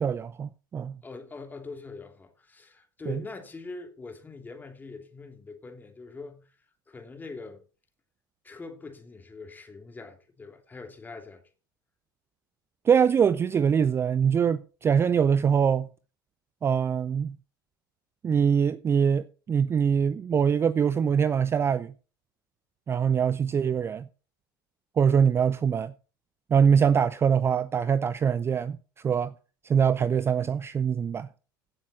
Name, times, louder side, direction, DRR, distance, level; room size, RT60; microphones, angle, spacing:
voice 1, 0.0-1.0 3.1-3.2 12.9-15.9 16.6-17.4 18.2-21.9 22.9-24.1 25.0-25.9 26.5-28.8 29.0-29.3 29.6-31.3, right 7 dB, 20° right, 0.5 m, -23 dB
voice 2, 1.0-6.4 6.9-7.6 8.4-11.4, left 3 dB, 15° left, 2.9 m, -43 dB
16.0 x 7.4 x 4.2 m
figure-of-eight pair, 75°, 11 cm